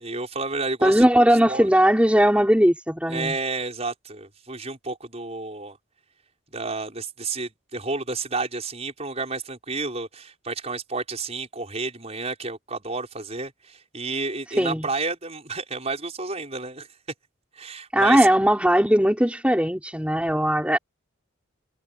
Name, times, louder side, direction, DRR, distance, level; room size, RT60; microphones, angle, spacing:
voice 1, 0.0-1.0 1.5-1.7 3.1-5.8 6.5-16.9 17.6-18.3, right 3 dB, 30° right, 6.2 m, -31 dB
voice 2, 0.8-3.4 14.6-14.9 17.9-20.8, equal, 5° right, 4.9 m, -19 dB
head